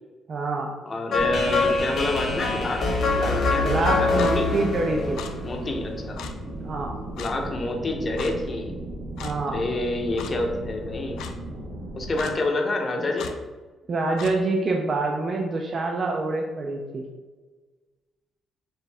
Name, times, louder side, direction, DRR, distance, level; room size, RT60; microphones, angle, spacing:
voice 1, 0.3-0.7 3.6-5.2 6.6-7.0 9.2-9.6 13.9-17.0, right 3 dB, 45° right, 1 dB, 0.4 m, -26 dB
voice 2, 0.8-2.8 3.2-3.7 3.9-4.5 5.4-6.2 7.2-8.7 9.5-11.2 11.9-13.3, left 2 dB, 35° left, 3 dB, 0.7 m, -28 dB
sound 1, 1.1-6.1, left 3 dB, 60° left, 1.1 m, -25 dB
sound 2, 1.1-12.2, right 1 dB, 85° right, 0.8 m, -36 dB
Clock, 4.2-4.3 5.2-5.3 6.2-6.3 7.2-7.3 8.2-8.3 9.2-9.4 10.2-10.3 11.2-11.3 12.2-12.4 13.2-13.3 14.2-14.3, left 7 dB, 85° left, 0.3 m, -36 dB
4.4 x 2.6 x 3.3 m, 1.3 s
cardioid pair, 90°, 0 cm